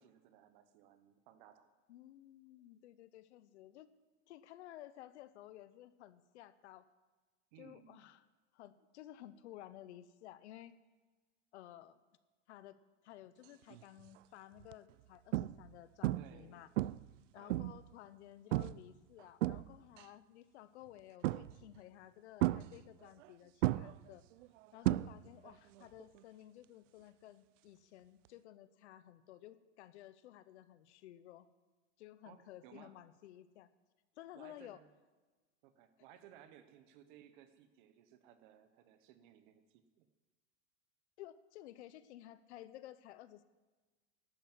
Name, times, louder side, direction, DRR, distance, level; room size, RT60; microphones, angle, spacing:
voice 1, 0.0-1.6 7.5-8.1 16.1-16.7 17.4-17.6 24.8-25.1 32.2-33.0 34.3-34.9 35.6-40.1, right 10 dB, 45° right, 11 dB, 1.0 m, -60 dB
voice 2, 1.9-3.9 4.2-6.9 7.6-8.3 8.5-10.8 11.5-12.0 12.5-16.7 17.3-24.2 24.7-31.5 32.0-33.7 34.2-34.8 41.2-43.4, left 13 dB, 65° left, 15 dB, 0.9 m, -55 dB
sound 1, 13.7-14.0 14.6-14.7 15.3-15.8 16.0-16.4 16.8-17.9 18.5-18.9 19.2-20.0 21.2-21.8 22.4-23.3 23.6-25.5 25.8-26.2 28.3-28.4, right 16 dB, 85° right, 0.5 m, -35 dB
12.0 x 8.8 x 7.8 m, 1.3 s
supercardioid pair, 170°, 36 cm